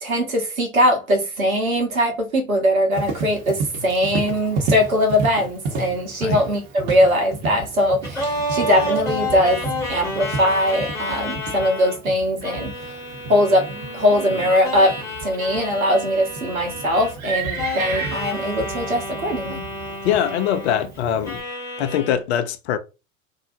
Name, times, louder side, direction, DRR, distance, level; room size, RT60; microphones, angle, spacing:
voice 1, 0.0-12.7 13.3-19.6, equal, 80° right, 1.1 m, -21 dB
Livestock farm animals working animals, 2.9-21.4, right 4 dB, 40° right, 0.9 m, -32 dB
sound 1, 8.0-12.0 12.4-17.3 17.5-20.9 21.2-22.1, left 1 dB, 5° left, 1.3 m, -30 dB
voice 2, 20.0-21.4 21.8-22.8, left 9 dB, 50° left, 0.5 m, -22 dB
2.7 x 2.1 x 2.6 m
figure-of-eight pair, 85°, 41 cm